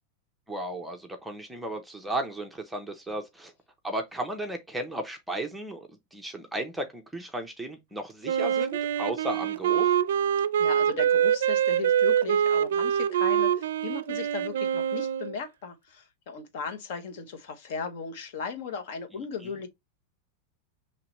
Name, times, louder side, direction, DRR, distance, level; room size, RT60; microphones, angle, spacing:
voice 1, 0.5-3.5 3.8-10.0 19.1-19.5, right 1 dB, 5° right, 0.6 m, -35 dB
Wind instrument woodwind instrument, 8.2-15.4, right 9 dB, 85° right, 0.4 m, -25 dB
voice 2, 10.6-19.7, left 6 dB, 55° left, 1.0 m, -37 dB
5.6 x 3.1 x 3.0 m
supercardioid pair, 165°, 0 cm